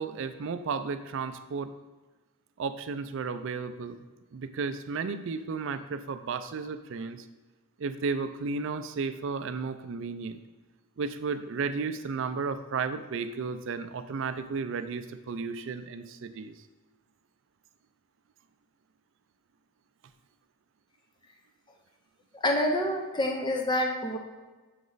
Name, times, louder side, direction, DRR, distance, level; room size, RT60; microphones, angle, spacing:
voice 1, 0.0-1.7 2.6-4.0 4.3-7.2 7.8-10.4 11.0-16.5, right 5 dB, 60° right, 10 dB, 0.4 m, -33 dB
voice 2, 22.3-24.2, left 1 dB, 20° left, 2 dB, 0.5 m, -27 dB
7.8 x 3.1 x 3.9 m, 1.2 s
head